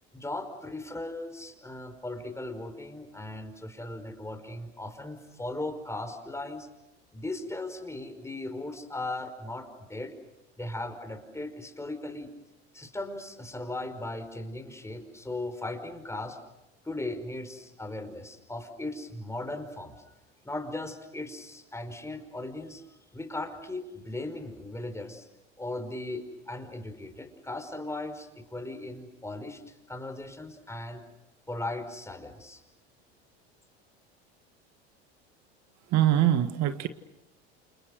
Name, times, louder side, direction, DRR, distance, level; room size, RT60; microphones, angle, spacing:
voice 1, 0.1-6.7 7.1-10.1 10.6-12.3 12.7-16.4 16.8-19.9 20.4-22.8 23.1-25.3 25.6-29.6 29.9-31.0 31.5-32.6, left 2 dB, 10° left, 7 dB, 5.3 m, -37 dB
voice 2, 35.9-36.9, right 12 dB, 50° right, 10 dB, 1.6 m, -23 dB
28.5 x 28.5 x 6.5 m, 0.90 s
hypercardioid pair, 85°, 34 cm